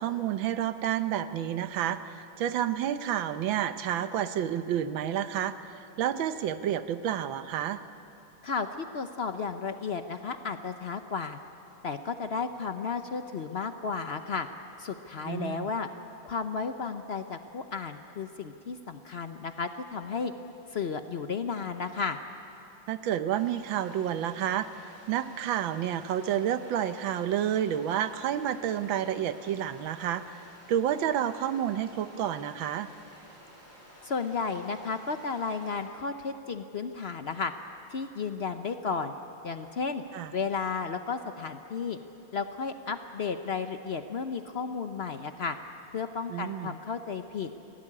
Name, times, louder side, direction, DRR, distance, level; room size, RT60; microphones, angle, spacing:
voice 1, 0.0-5.6 6.0-7.8 15.3-15.7 22.9-24.7 25.1-30.4 30.7-32.9 40.1-40.3 46.3-46.7, right 10 dB, 85° right, 11 dB, 1.6 m, -30 dB
voice 2, 8.4-11.4 11.8-14.5 14.8-15.9 16.2-20.3 20.7-22.2 34.0-37.5 37.9-39.1 39.4-40.0 40.3-42.0 42.3-45.6 45.9-47.5, left 5 dB, 65° left, 8 dB, 0.6 m, -33 dB
sound 1, 23.3-35.8, equal, 20° right, 6.3 m, -53 dB
22.5 x 16.5 x 9.9 m, 2.8 s
omnidirectional pair, 2.1 m